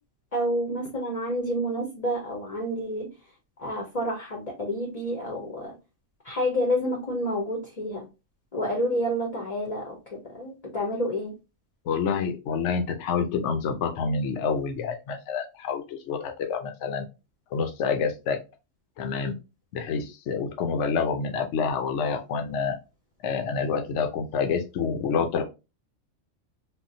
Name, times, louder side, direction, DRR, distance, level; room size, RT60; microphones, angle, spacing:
voice 1, 0.3-3.1 3.6-5.7 6.2-8.1 8.5-11.3, equal, 40° left, 0 dB, 0.6 m, -29 dB
voice 2, 11.9-17.0 17.5-18.4 19.0-19.3 19.7-22.8 23.2-25.4, left 5 dB, 70° left, 4 dB, 0.9 m, -27 dB
3.6 x 2.2 x 2.6 m, 0.28 s
omnidirectional pair, 1.3 m